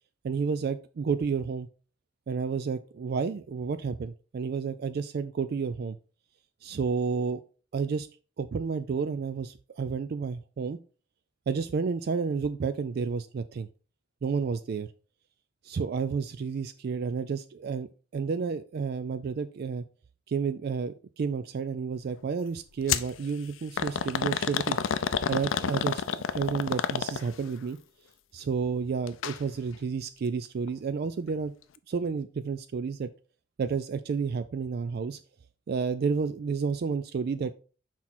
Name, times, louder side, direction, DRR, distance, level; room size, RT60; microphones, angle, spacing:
voice 1, 0.2-1.7 2.3-6.0 6.6-7.4 7.7-8.1 8.4-10.8 11.5-13.7 14.2-14.9 15.6-19.8 20.3-24.8 25.3-27.8 28.3-31.5 31.9-33.1 33.6-35.2 35.7-37.5, right 5 dB, 55° right, 11 dB, 0.3 m, -31 dB
sound 1, 22.9-23.1 23.8-27.5 29.1-29.4 29.7-29.8 30.7-30.8, left 7 dB, 90° left, 0.5 m, -29 dB
6.1 x 4.3 x 4.2 m, 0.37 s
head